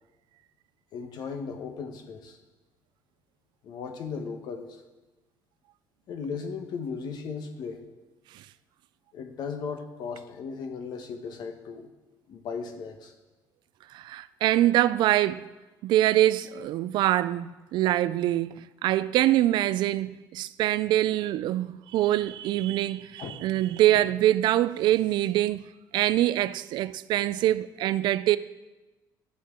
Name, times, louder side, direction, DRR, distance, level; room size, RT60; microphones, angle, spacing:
voice 1, 0.9-2.4 3.6-4.8 6.1-7.8 9.1-11.9 12.3-13.1 23.2-23.3 23.9-24.1, left 5 dB, 60° left, 1.1 m, -36 dB
voice 2, 13.9-15.4 15.8-25.6 25.9-28.4, right 14 dB, 70° right, 0.3 m, -24 dB
13.0 x 8.3 x 3.7 m
cardioid pair, 155°, 8 cm